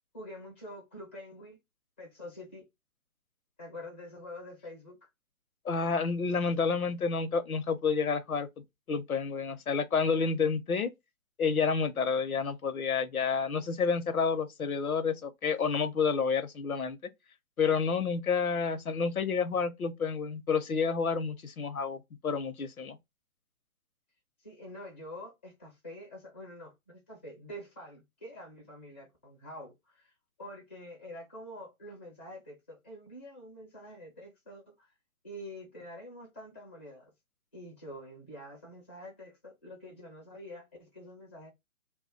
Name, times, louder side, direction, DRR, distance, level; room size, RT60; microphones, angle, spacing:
voice 1, 0.1-1.6 2.0-2.7 3.6-5.1 24.4-30.1 30.4-34.9 35.2-37.1 37.5-41.5, left 1 dB, 10° left, 0.4 m, -46 dB
voice 2, 5.6-8.5 8.9-10.9 11.4-17.0 17.6-23.0, left 5 dB, 85° left, 0.6 m, -29 dB
2.2 x 2.0 x 3.8 m
figure-of-eight pair, 125°, 42 cm